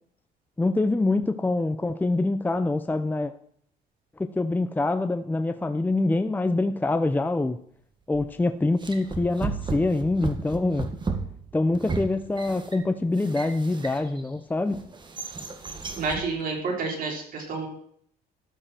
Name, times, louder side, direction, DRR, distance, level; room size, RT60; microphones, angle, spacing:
voice 1, 0.6-3.3 4.2-7.6 8.1-10.9 11.5-14.8, left 2 dB, 10° left, 9 dB, 0.7 m, -25 dB
sound 1, 8.1-8.4 8.8-14.3 14.7-16.3, right 4 dB, 25° right, 2.0 m, -34 dB
voice 2, 15.9-17.7, right 4 dB, 55° right, 0 dB, 5.0 m, -29 dB
14.0 x 12.5 x 4.5 m, 0.64 s
cardioid pair, 110°, 17 cm